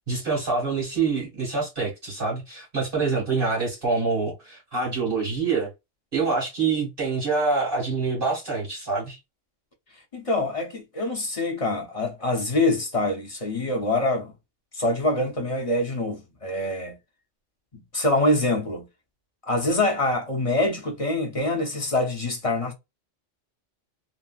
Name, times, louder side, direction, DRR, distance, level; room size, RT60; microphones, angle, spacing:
voice 1, 0.1-5.7 6.1-9.2, right 4 dB, 45° right, 1.7 m, -26 dB
voice 2, 10.1-14.3 14.7-17.0 17.7-18.9 19.5-22.7, left 2 dB, 35° left, 0.6 m, -25 dB
3.0 x 2.7 x 2.3 m
omnidirectional pair, 1.3 m